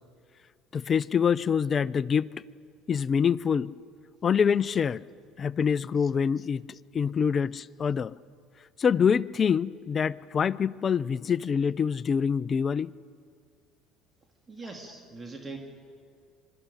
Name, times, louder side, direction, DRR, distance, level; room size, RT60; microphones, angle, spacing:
voice 1, 0.7-2.3 2.9-3.7 4.2-5.0 5.4-8.1 8.8-12.9, left 7 dB, 40° left, 19 dB, 0.5 m, -25 dB
voice 2, 14.5-15.6, right 3 dB, 25° right, 2 dB, 2.4 m, -41 dB
23.0 x 13.0 x 9.7 m, 2.2 s
hypercardioid pair, 75°, 0 cm